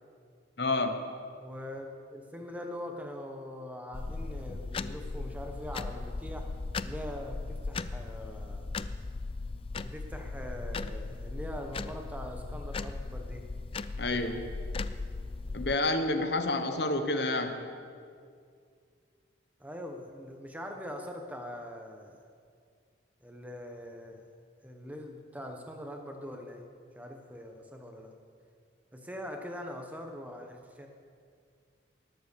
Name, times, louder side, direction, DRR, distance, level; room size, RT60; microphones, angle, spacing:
voice 1, 0.6-1.0 14.0-14.5 15.5-17.7, left 2 dB, 60° left, 7 dB, 1.2 m, -29 dB
voice 2, 1.4-6.5 6.8-8.7 9.8-13.5 19.6-22.2 23.2-24.2 24.6-26.6 27.0-28.1 28.9-30.9, equal, 10° right, 3 dB, 1.2 m, -42 dB
sound 1, 3.9-15.7, left 3 dB, 30° left, 0.3 m, -37 dB
19.0 x 7.9 x 6.9 m, 2.2 s
head